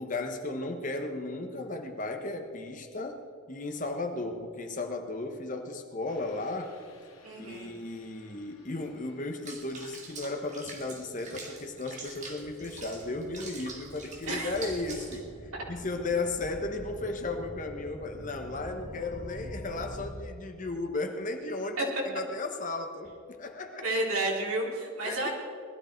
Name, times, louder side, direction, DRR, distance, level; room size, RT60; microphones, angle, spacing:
voice 1, 0.0-6.8 7.4-23.9 25.0-25.3, left 2 dB, 35° left, 5 dB, 1.2 m, -35 dB
sound 1, 6.1-20.1, equal, 70° left, 2.4 m, -48 dB
voice 2, 7.2-7.7 14.3-14.5 21.8-21.9 23.8-25.3, right 2 dB, 90° right, -3 dB, 3.7 m, -31 dB
Water / Bathtub (filling or washing), 9.4-15.3, right 3 dB, 35° right, 2.1 m, -44 dB
20.5 x 12.5 x 4.5 m, 2.2 s
head